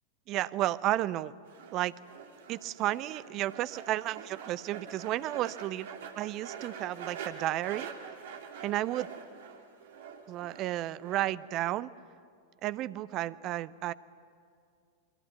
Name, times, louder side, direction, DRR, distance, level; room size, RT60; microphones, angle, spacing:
voice 1, 0.3-1.3 1.7-1.9 2.5-7.9 8.6-9.1 10.3-11.9 12.6-13.9, right 14 dB, 35° right, 17 dB, 0.7 m, -32 dB
sound 1, 1.4-11.3, right 6 dB, 55° right, 2.5 m, -45 dB
27.5 x 22.0 x 9.2 m, 2.3 s
figure-of-eight pair, 90°, 0 cm